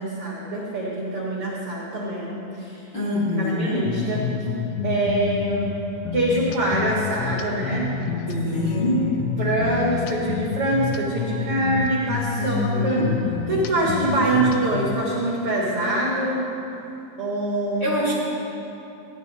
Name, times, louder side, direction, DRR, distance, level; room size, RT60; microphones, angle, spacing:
voice 1, 0.0-2.8 3.4-4.2 4.8-5.8 6.1-7.9 8.5-9.0 9.4-13.0 13.5-16.4 17.2-17.9, right 2 dB, 55° right, -6 dB, 1.6 m, -24 dB
voice 2, 2.9-3.8 8.3-9.1 12.4-13.1 17.8-18.1, left 1 dB, 35° left, -8 dB, 2.1 m, -25 dB
sound 1, 3.8-14.9, left 7 dB, 80° left, 2.5 m, -29 dB
15.5 x 10.0 x 4.1 m, 2.9 s
omnidirectional pair, 4.7 m